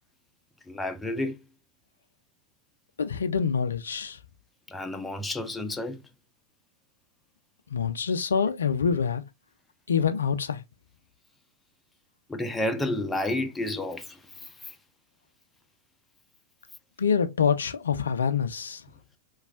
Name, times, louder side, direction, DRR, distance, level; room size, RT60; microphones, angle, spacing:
voice 1, 0.7-1.4 4.7-6.0 12.3-14.8, left 1 dB, 10° left, 0.5 m, -31 dB
voice 2, 3.0-4.2 7.7-9.2 9.9-10.6 17.0-18.8, left 6 dB, 70° left, 0.4 m, -26 dB
3.1 x 2.3 x 2.3 m
figure-of-eight pair, 90°, 0 cm